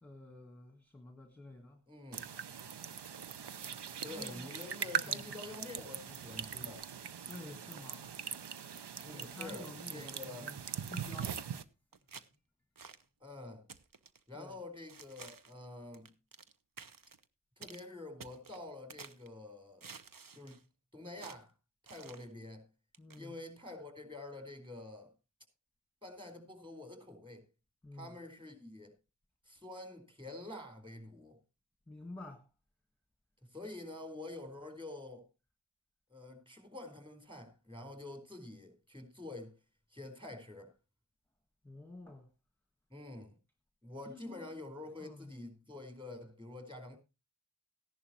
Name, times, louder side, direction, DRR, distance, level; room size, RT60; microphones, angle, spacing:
voice 1, 0.0-1.8 4.1-4.5 4.9-5.4 7.3-8.1 9.1-11.4 14.3-14.6 23.0-23.4 27.8-28.1 31.9-32.5 41.6-42.3 44.0-44.5 45.0-45.4, left 2 dB, 5° left, 1.5 m, -50 dB
voice 2, 1.9-2.3 4.0-6.8 9.0-10.5 13.2-13.7 14.3-16.1 17.6-19.9 20.3-20.6 20.9-21.5 21.8-22.7 23.2-25.1 26.0-27.5 27.9-28.9 29.5-31.4 33.5-35.3 36.1-39.5 39.9-40.7 42.9-43.4 43.8-47.0, left 2 dB, 10° right, 4.2 m, -47 dB
sound 1, 2.1-11.6, right 7 dB, 90° right, 0.7 m, -41 dB
sound 2, 10.6-11.3 11.9-12.3 12.8-13.0 13.7-14.2 14.9-15.6 15.9-16.5 16.8-17.2 17.6-17.8 18.2-19.3 19.8-20.6 21.2-21.4 21.9-22.3 22.9-23.2, right 5 dB, 55° right, 0.9 m, -52 dB
15.0 x 11.0 x 3.0 m
wide cardioid pair, 50°, 40 cm